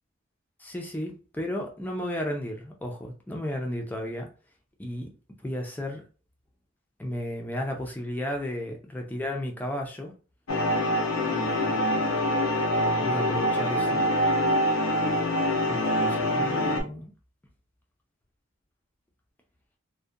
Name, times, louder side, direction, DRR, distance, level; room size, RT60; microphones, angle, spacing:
voice 1, 0.6-4.3 4.8-5.1 5.4-6.0 7.0-10.1 11.2-11.8 13.0-14.1 15.7-17.1, left 1 dB, 10° left, 0.4 m, -34 dB
sound 1, 10.5-16.8, equal, 90° left, 0.6 m, -25 dB
2.7 x 2.1 x 2.3 m
head